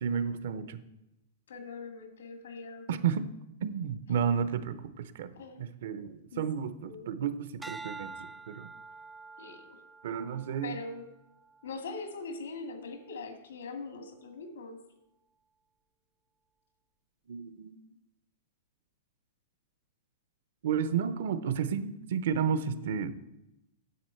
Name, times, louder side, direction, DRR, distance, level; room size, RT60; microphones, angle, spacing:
voice 1, 0.0-0.8 2.9-3.3 3.6-5.3 5.6-8.7 10.0-10.8 17.3-17.7 20.6-23.1, right 7 dB, 55° right, 12 dB, 0.7 m, -32 dB
voice 2, 1.5-2.9 5.4-5.6 5.9-6.5 6.8-7.1 9.4-9.8 10.6-11.0 11.6-14.8, left 4 dB, 90° left, 7 dB, 1.8 m, -42 dB
sound 1, 7.6-12.1 12.6-13.0, right 3 dB, 5° right, 0.3 m, -47 dB
9.5 x 7.5 x 4.4 m, 0.88 s
supercardioid pair, 175°, 0 cm